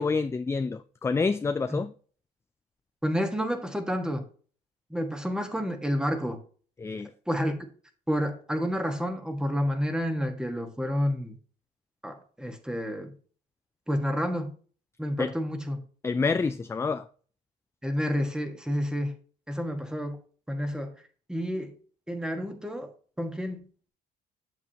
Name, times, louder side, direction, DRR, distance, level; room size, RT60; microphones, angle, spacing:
voice 1, 0.0-1.9 6.8-7.1 15.2-15.3 16.0-17.1, left 4 dB, 15° left, 0.4 m, -27 dB
voice 2, 3.0-4.3 4.9-6.4 7.3-7.7 8.1-11.3 12.0-13.1 13.9-14.6 15.0-15.8 17.8-19.1 19.5-20.2 20.5-20.9 21.3-21.8 22.1-22.9 23.2-23.6, equal, 5° right, 1.4 m, -29 dB
8.3 x 7.0 x 2.9 m
cardioid pair, 110°, 17 cm